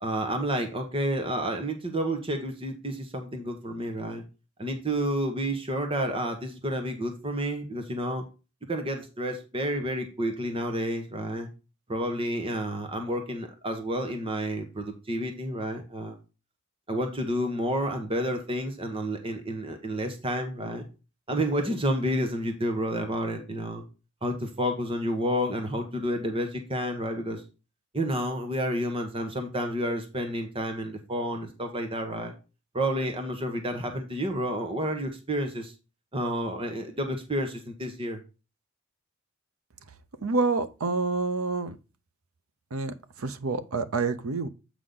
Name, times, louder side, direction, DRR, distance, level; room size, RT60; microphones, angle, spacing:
voice 1, 0.0-4.2 4.6-8.2 8.7-11.5 11.9-16.2 16.9-20.8 21.3-23.8 24.2-27.4 27.9-32.3 32.7-35.7 36.1-38.2, equal, 25° right, 1.1 m, -30 dB
voice 2, 40.2-41.8 42.7-44.5, right 3 dB, 90° right, 0.8 m, -28 dB
8.2 x 4.9 x 3.9 m
head